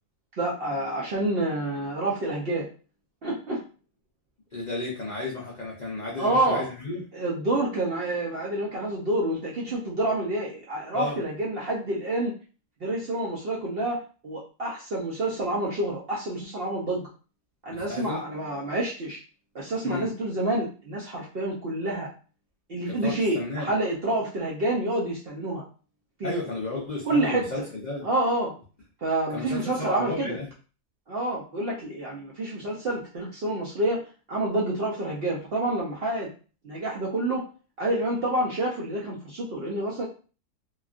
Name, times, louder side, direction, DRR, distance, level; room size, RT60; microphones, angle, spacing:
voice 1, 0.4-2.7 3.2-3.6 6.2-6.7 7.1-12.3 12.8-17.0 17.6-19.2 19.5-22.1 22.7-25.6 26.2-26.3 27.1-27.5 28.0-28.5 29.0-30.3 31.1-34.0 34.3-36.3 36.6-37.4 37.8-40.0, right 1 dB, 70° right, -4 dB, 0.5 m, -28 dB
voice 2, 4.5-7.0 10.9-11.2 17.7-18.2 19.8-20.1 22.9-23.7 26.2-28.0 29.3-30.5, left 2 dB, 70° left, -4 dB, 0.4 m, -32 dB
3.0 x 2.3 x 2.4 m, 0.36 s
omnidirectional pair, 1.7 m